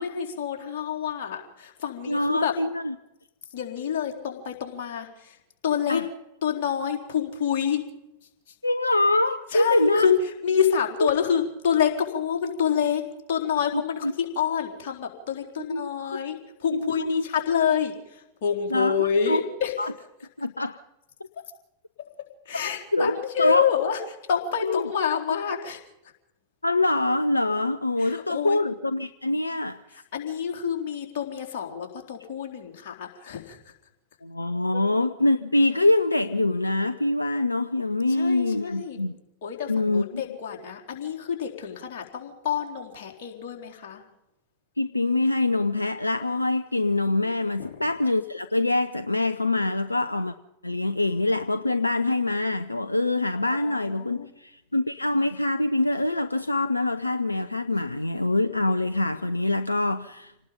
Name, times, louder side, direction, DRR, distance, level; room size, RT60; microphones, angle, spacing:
voice 1, 0.0-2.5 3.5-5.4 5.6-6.0 6.4-7.9 9.5-19.7 22.0-24.0 24.3-25.8 28.0-28.6 29.9-33.7 34.7-34.8 38.1-39.0 39.4-44.0 47.6-47.8 53.4-54.3, left 8 dB, 50° left, 2 dB, 4.1 m, -28 dB
voice 2, 2.1-2.9 5.9-6.0 8.6-10.2 11.0-11.1 13.7-14.1 15.7-15.9 16.7-17.3 18.7-19.4 19.8-19.9 20.4-20.8 22.9-23.6 24.6-24.8 26.6-29.8 34.2-39.2 39.7-40.2 44.8-50.3 50.6-60.3, left 2 dB, 85° left, 12 dB, 0.7 m, -24 dB
28.0 x 19.0 x 5.4 m, 0.88 s
figure-of-eight pair, 90°, 0 cm